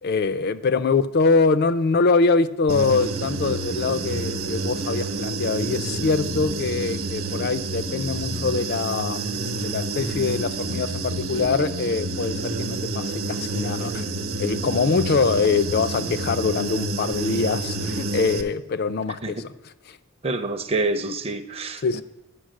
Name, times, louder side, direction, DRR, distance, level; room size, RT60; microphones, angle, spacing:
voice 1, 0.0-14.0 14.4-19.5 19.9-20.0 21.8-22.0, left 4 dB, 45° left, 13 dB, 0.4 m, -23 dB
Human voice / Buzz, 2.7-18.4, right 2 dB, 65° right, 0.9 m, -29 dB
voice 2, 20.2-22.0, right 2 dB, 25° right, 9 dB, 0.6 m, -27 dB
10.0 x 5.6 x 6.4 m, 0.98 s
head